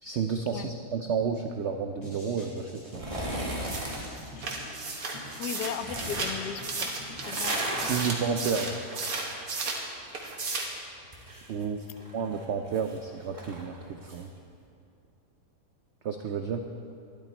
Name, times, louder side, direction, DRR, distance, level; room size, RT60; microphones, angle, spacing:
voice 1, 0.0-3.0 7.9-8.8 11.5-11.8 12.1-14.3 16.0-16.7, right 6 dB, 85° right, 6 dB, 0.6 m, -31 dB
sound 1, 2.0-7.9, left 1 dB, 20° left, 3.0 m, -46 dB
sound 2, 2.9-4.1 5.2-6.3 7.0-10.5 10.8-14.2 14.6-14.7, right 1 dB, 20° right, 1.5 m, -37 dB
sound 3, 3.6-9.9 10.1-10.8, right 3 dB, 55° right, 1.7 m, -34 dB
voice 2, 4.3-4.7 5.4-6.9 7.3-7.6, left 9 dB, 80° left, 11 dB, 1.1 m, -37 dB
12.0 x 11.5 x 4.3 m, 2.6 s
omnidirectional pair, 1.8 m